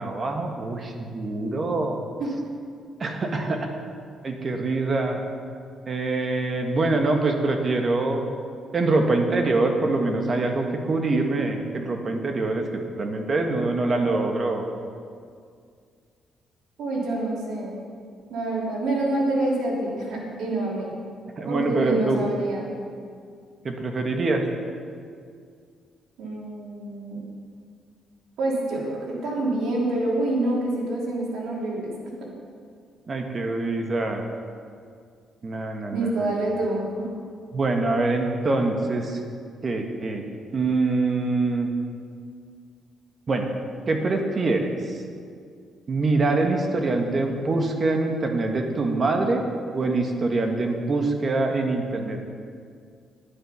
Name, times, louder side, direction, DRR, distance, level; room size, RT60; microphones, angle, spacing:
voice 1, 0.0-2.0 3.0-3.7 4.2-5.3 5.9-8.2 8.7-14.7 21.4-22.2 23.6-24.4 33.1-34.2 35.4-36.4 37.5-39.2 39.6-40.3 40.5-41.7 43.3-43.5 43.9-45.0 45.9-49.4 49.7-52.2, right 3 dB, 40° right, 3 dB, 1.5 m, -24 dB
voice 2, 16.8-17.7 18.3-20.9 21.4-22.7 26.2-27.2 28.4-31.9 35.9-37.1, right 2 dB, 80° right, -3 dB, 3.1 m, -27 dB
10.5 x 10.0 x 5.8 m, 2.2 s
cardioid pair, 90°, 0 cm